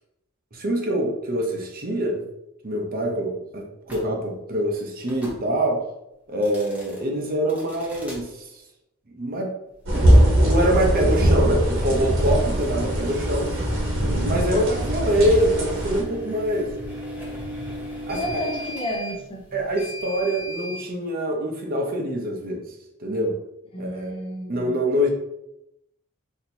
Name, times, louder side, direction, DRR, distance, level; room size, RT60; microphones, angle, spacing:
voice 1, 0.5-2.3 2.6-5.8 6.3-8.5 9.1-9.5 9.9-10.2 10.4-13.5 14.2-16.7 18.1-18.2 19.5-22.7 23.0-23.4 23.8-24.2 24.5-25.1, equal, 45° right, 1 dB, 0.7 m, -24 dB
sound 1, 3.8-4.1 5.0-5.4 6.3-7.0 7.5-8.2 9.8-20.8, equal, 5° right, 0.8 m, -36 dB
sound 2, 9.9-16.0, equal, 65° right, 1.1 m, -21 dB
voice 2, 18.1-19.4 23.7-24.8, equal, 25° left, 1 dB, 0.5 m, -31 dB
4.2 x 2.8 x 2.7 m, 0.85 s
head